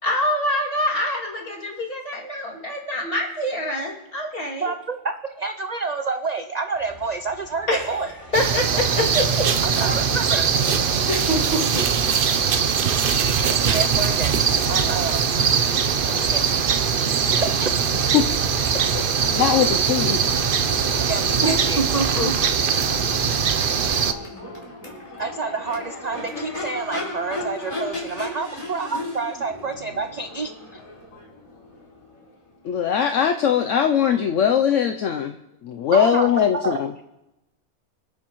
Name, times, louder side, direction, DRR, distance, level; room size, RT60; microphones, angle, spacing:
voice 1, 0.0-4.7 7.7-9.2 11.1-11.8 21.4-21.5 21.9-22.3, equal, 40° left, -3 dB, 2.8 m, -25 dB
voice 2, 4.6-8.1 9.6-10.5 13.7-14.4 14.7-15.2 16.0-16.7 17.4-17.7 19.6-19.7 21.0-21.9 25.2-30.8 35.9-36.3 36.5-36.8, right 4 dB, 70° right, 8 dB, 0.4 m, -29 dB
sound 1, 6.7-19.8, equal, 15° right, 4.5 m, -42 dB
sound 2, 8.3-24.1, right 6 dB, 50° right, 0.7 m, -21 dB
voice 3, 18.1-18.7 18.9-19.0 19.3-20.2 32.6-35.4 35.6-36.9, left 8 dB, 65° left, 6 dB, 0.9 m, -21 dB
Crowd / Race car auto racing / Accelerating revving vroom, 19.0-32.8, left 2 dB, 25° left, 3.2 m, -36 dB
26.0 x 9.0 x 3.1 m, 0.95 s
omnidirectional pair, 1.5 m